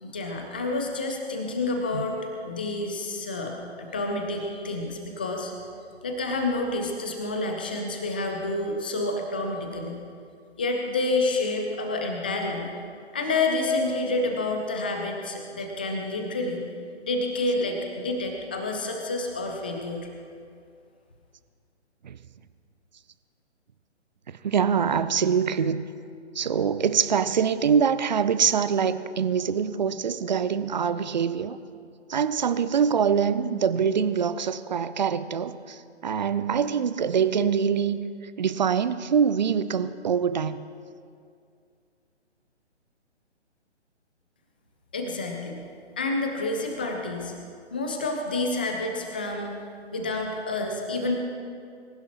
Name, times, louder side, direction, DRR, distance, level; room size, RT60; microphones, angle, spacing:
voice 1, 0.0-2.2 2.4-3.5 3.8-5.5 6.0-10.0 10.6-12.7 13.1-16.6 17.0-20.0 44.9-45.6 46.0-47.3 47.7-49.5 49.9-51.2, left 2 dB, 10° left, 2 dB, 0.4 m, -28 dB
voice 2, 24.4-25.9 26.4-31.6 32.1-38.0 38.4-40.7, right 7 dB, 40° right, 14 dB, 0.6 m, -24 dB
25.0 x 15.0 x 3.0 m, 2.3 s
figure-of-eight pair, 135°, 35 cm